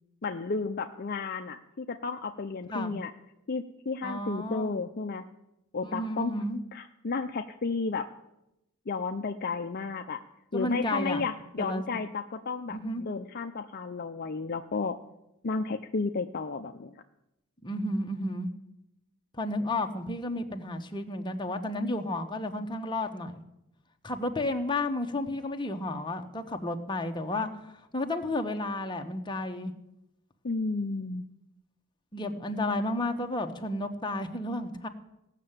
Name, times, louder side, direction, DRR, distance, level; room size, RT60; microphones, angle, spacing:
voice 1, 0.2-3.1 3.5-5.2 5.7-6.4 6.7-8.1 8.9-10.2 10.5-15.0 15.4-17.0 30.4-31.3, left 4 dB, 45° left, 6 dB, 0.5 m, -32 dB
voice 2, 4.0-4.8 5.8-6.6 10.5-11.2 11.6-11.9 12.7-13.0 17.6-18.5 19.4-23.4 24.0-29.7 32.1-34.9, left 1 dB, 20° left, 4 dB, 1.0 m, -32 dB
16.5 x 6.6 x 8.8 m, 0.89 s
head